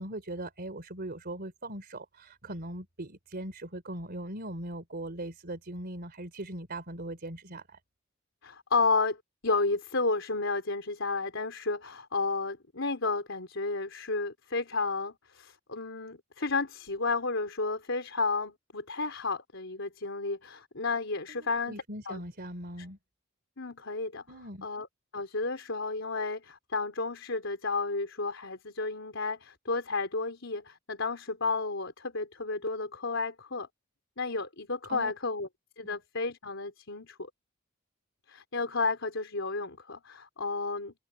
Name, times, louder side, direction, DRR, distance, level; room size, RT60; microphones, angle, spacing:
voice 1, 0.0-7.8 21.3-23.0 24.3-24.7 34.9-35.1 35.8-36.0, right 1 dB, 50° right, 3.5 m, -40 dB
voice 2, 8.4-21.8 22.1-22.2 23.6-24.2 24.6-24.9 25.1-33.7 34.2-35.5 35.8-37.3 38.3-40.9, left 3 dB, 65° left, 4.2 m, -32 dB
head